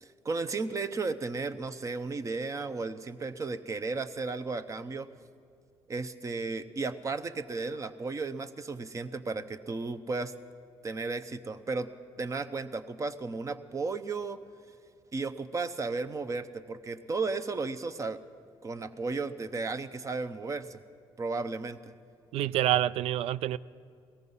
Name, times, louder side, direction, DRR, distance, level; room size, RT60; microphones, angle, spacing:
voice 1, 0.0-5.1 5.9-10.3 10.8-11.9 12.2-14.4 15.1-18.2 18.6-20.8 21.2-21.9, right 3 dB, 30° right, 12 dB, 0.7 m, -34 dB
voice 2, 22.3-23.6, right 12 dB, 75° right, 19 dB, 0.4 m, -27 dB
17.5 x 14.5 x 5.5 m, 2.3 s
cardioid pair, 95°, 11 cm